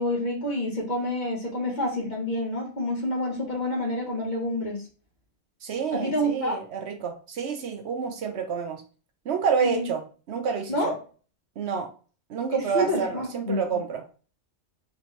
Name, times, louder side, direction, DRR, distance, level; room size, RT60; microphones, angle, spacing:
voice 1, 0.0-4.8 5.9-6.6 9.6-9.9 10.7-10.9 12.5-13.8, left 1 dB, 40° left, -1 dB, 1.2 m, -28 dB
voice 2, 5.6-8.8 9.2-10.0 10.3-10.9 11.6-11.9 12.3-14.0, right 6 dB, 70° right, 5 dB, 1.0 m, -28 dB
4.3 x 2.9 x 3.1 m, 0.38 s
omnidirectional pair, 1.2 m